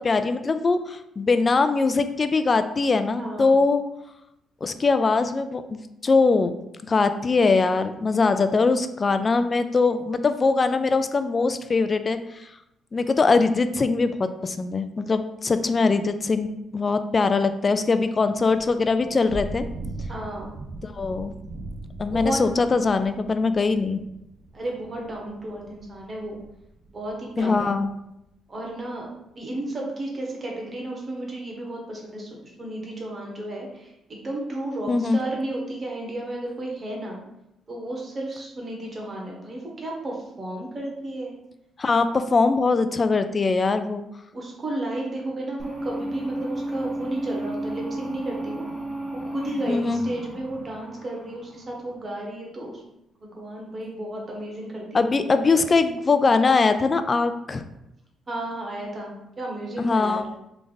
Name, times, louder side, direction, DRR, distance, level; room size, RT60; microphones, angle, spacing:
voice 1, 0.0-3.8 4.6-6.5 6.9-12.2 12.9-16.5 16.7-19.6 20.8-21.3 22.0-24.0 27.4-27.9 34.9-35.2 41.8-44.0 49.7-50.0 54.9-57.6 59.8-60.5, left 4 dB, 35° left, 10 dB, 0.3 m, -22 dB
voice 2, 3.2-3.5 20.1-20.5 22.1-22.5 24.5-26.4 26.9-27.7 28.5-29.1 29.3-37.2 37.7-41.3 44.3-48.6 49.2-52.7 53.2-55.1 55.6-55.7 58.3-60.2, right 1 dB, 35° right, -1 dB, 1.1 m, -33 dB
Thunder / Rain, 18.4-27.9, right 2 dB, 70° right, 0.5 m, -39 dB
sound 1, 45.6-52.0, right 1 dB, 15° right, 0.7 m, -33 dB
3.4 x 2.5 x 3.9 m, 0.86 s
cardioid pair, 90°, 0 cm